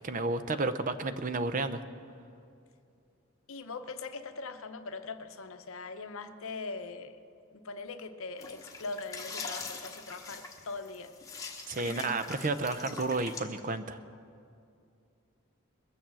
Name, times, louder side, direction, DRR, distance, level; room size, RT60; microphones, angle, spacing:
voice 1, 0.0-1.8 11.7-14.0, right 3 dB, 35° right, 11 dB, 0.5 m, -31 dB
voice 2, 3.5-7.2 7.5-11.1 11.8-12.1, left 3 dB, 70° left, 9 dB, 0.8 m, -41 dB
sound 1, 8.4-13.4, left 4 dB, 15° left, 1.0 m, -43 dB
21.0 x 7.1 x 7.4 m, 2.5 s
head